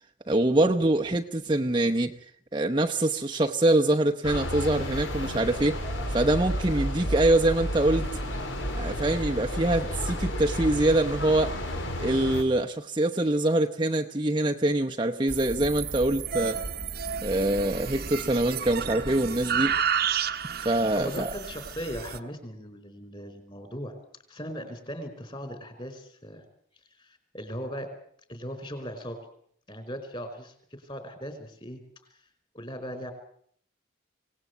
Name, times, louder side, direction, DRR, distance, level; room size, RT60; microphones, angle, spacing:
voice 1, 0.3-2.1 2.5-5.8 6.1-8.1 8.7-11.5 12.0-16.6 17.2-19.7 20.6-21.3, right 1 dB, 25° right, 3 dB, 0.9 m, -24 dB
sound 1, 4.2-12.4, equal, 70° left, 4.1 m, -31 dB
sound 2, 15.3-22.2, right 7 dB, 50° right, 1.1 m, -31 dB
voice 2, 21.0-23.9 24.3-26.4 27.0-27.9 28.3-29.2 29.7-31.8 32.5-33.1, equal, 25° left, 8 dB, 4.8 m, -38 dB
25.0 x 18.5 x 8.1 m, 0.64 s
head